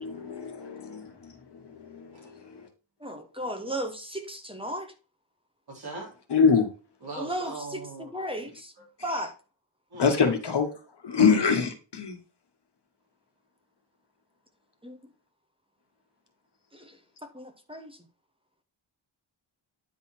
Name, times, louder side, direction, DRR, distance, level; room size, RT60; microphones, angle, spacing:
voice 1, 0.0-1.3 1.6-2.7 6.3-6.7 10.0-10.7 11.0-12.2, left 5 dB, 55° left, 1.6 m, -25 dB
voice 2, 3.0-4.9 7.2-8.7 9.0-9.3 14.8-15.0 16.7-16.9 17.3-18.0, equal, 10° right, 1.0 m, -35 dB
voice 3, 5.7-6.1 7.0-8.1 8.8-8.9 9.9-10.4, right 2 dB, 50° right, 2.9 m, -39 dB
9.5 x 4.1 x 4.4 m
wide cardioid pair, 170°, 48 cm